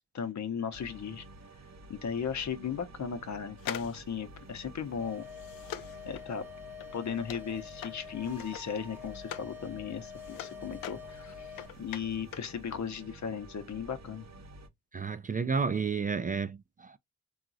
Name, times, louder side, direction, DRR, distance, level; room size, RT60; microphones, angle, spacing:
voice 1, 0.1-1.2 1.9-5.3 6.0-6.4 6.9-14.3, left 7 dB, 55° left, 0.8 m, -36 dB
sound 1, 0.7-14.7, right 2 dB, 50° right, 0.8 m, -51 dB
sound 2, 3.6-9.6 9.9-12.6 12.8-12.9, left 12 dB, 75° left, 0.5 m, -44 dB
sound 3, 5.0-11.7, left 7 dB, 5° right, 0.8 m, -47 dB
voice 2, 14.9-17.0, right 5 dB, 25° right, 0.4 m, -31 dB
3.7 x 2.4 x 2.6 m
supercardioid pair, 45°, 35 cm